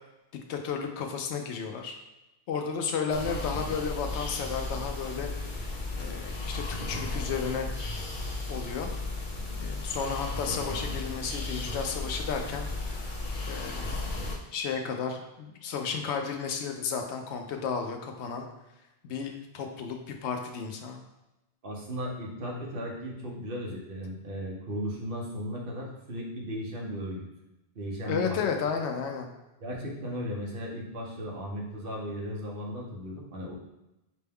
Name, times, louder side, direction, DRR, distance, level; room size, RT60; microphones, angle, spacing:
voice 1, 0.5-2.0 2.5-5.3 5.6-7.7 8.5-8.9 9.6-13.1 13.5-18.5 19.0-21.0 28.1-29.3, left 6 dB, 85° left, 4 dB, 0.9 m, -33 dB
sound 1, 3.1-14.4, left 2 dB, 50° left, 0.8 m, -35 dB
voice 2, 21.6-27.3 27.7-28.4 29.6-33.5, equal, 60° right, -2 dB, 1.0 m, -36 dB
5.1 x 2.2 x 3.4 m, 0.96 s
omnidirectional pair, 1.1 m